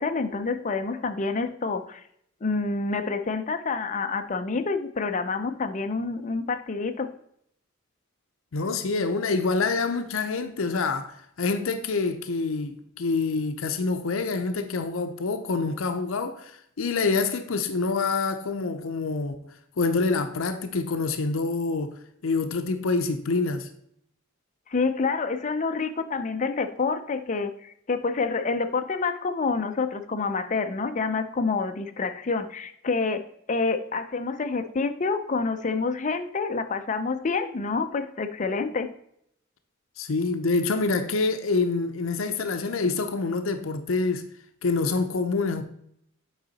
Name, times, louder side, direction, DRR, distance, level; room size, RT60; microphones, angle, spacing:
voice 1, 0.0-2.0 2.4-7.1 24.7-38.9, left 4 dB, 40° left, 0.5 m, -28 dB
voice 2, 8.5-22.0 22.2-23.7 40.0-44.3 44.6-45.6, left 3 dB, 80° left, 0.6 m, -26 dB
8.0 x 4.8 x 4.1 m
head